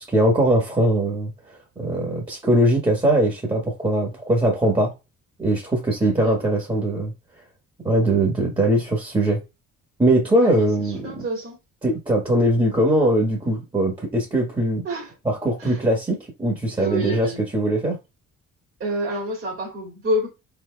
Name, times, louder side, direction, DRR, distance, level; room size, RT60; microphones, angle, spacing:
voice 1, 0.1-1.3 1.8-4.9 5.4-7.1 7.8-9.4 10.0-11.0 11.8-14.8 15.2-17.3 17.5-18.0, right 1 dB, 15° right, 1.4 m, -21 dB
voice 2, 6.0-6.4 10.4-10.7 11.0-11.6 14.8-15.1 15.6-15.8 16.7-17.4 18.8-20.3, equal, 45° right, 2.3 m, -28 dB
4.3 x 4.2 x 2.2 m
cardioid pair, 90°, 30 cm